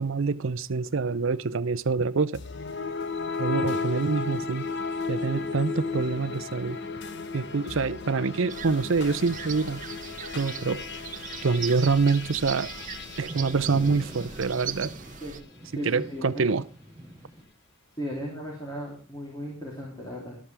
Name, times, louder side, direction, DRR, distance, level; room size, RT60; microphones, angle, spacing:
voice 1, 0.0-2.4 3.4-4.7 5.1-6.8 7.3-9.8 10.3-10.8 11.4-12.7 13.2-14.9 15.8-16.6, right 4 dB, 65° right, 0.6 m, -26 dB
sound 1, 2.3-14.7, left 4 dB, 55° left, 1.0 m, -35 dB
sound 2, 4.7-6.6 7.9-17.4, equal, 20° right, 6.1 m, -46 dB
sound 3, 8.5-15.4, right 8 dB, 35° right, 0.9 m, -39 dB
voice 2, 15.7-16.5 18.0-20.4, equal, 20° left, 3.2 m, -36 dB
13.0 x 12.5 x 3.4 m
head